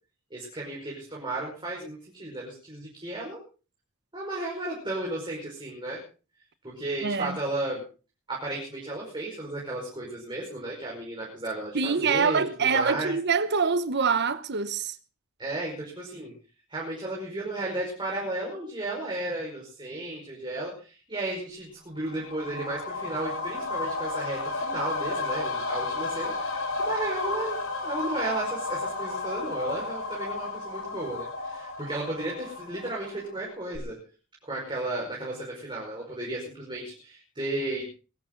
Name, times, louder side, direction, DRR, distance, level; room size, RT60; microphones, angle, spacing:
voice 1, 0.3-3.4 4.1-6.0 6.6-7.8 8.3-13.1 15.4-16.3 16.7-34.0 34.5-37.8, right 2 dB, 20° right, 5.3 m, -34 dB
voice 2, 7.0-7.4 11.7-15.0, right 5 dB, 50° right, 1.0 m, -25 dB
sound 1, 22.0-33.4 33.7-33.8, left 3 dB, 65° left, 4.6 m, -32 dB
21.5 x 13.0 x 3.9 m
head